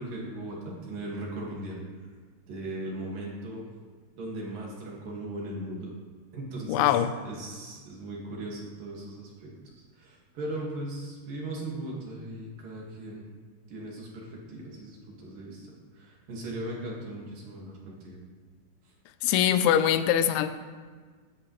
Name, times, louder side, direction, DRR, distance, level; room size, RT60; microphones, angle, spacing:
voice 1, 0.0-1.8 2.5-3.6 4.2-5.9 6.3-6.9 7.2-9.5 9.9-13.2 13.7-15.7 15.9-18.2 18.8-18.9, right 1 dB, 55° right, -3 dB, 3.3 m, -38 dB
voice 2, 6.7-7.1 19.2-20.5, left 10 dB, 90° left, 11 dB, 3.0 m, -23 dB
15.5 x 11.0 x 3.2 m, 1.5 s
omnidirectional pair, 5.2 m